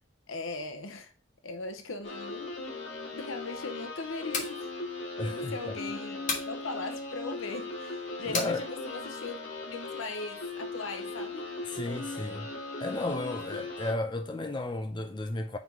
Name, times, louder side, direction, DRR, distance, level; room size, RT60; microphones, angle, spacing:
voice 1, 0.3-1.1 1.4-2.6 3.1-4.7 5.2-9.4 9.7-11.5, left 3 dB, 80° left, 0.8 m, -39 dB
sound 1, 2.0-13.9, left 2 dB, 60° left, 1.9 m, -39 dB
sound 2, 4.1-4.6 6.3-6.5 8.3-8.6, left 4 dB, 40° left, 1.6 m, -32 dB
voice 2, 5.2-5.8 8.3-8.6 11.7-12.5 12.8-15.6, left 2 dB, 25° left, 0.5 m, -33 dB
4.7 x 4.0 x 5.3 m
head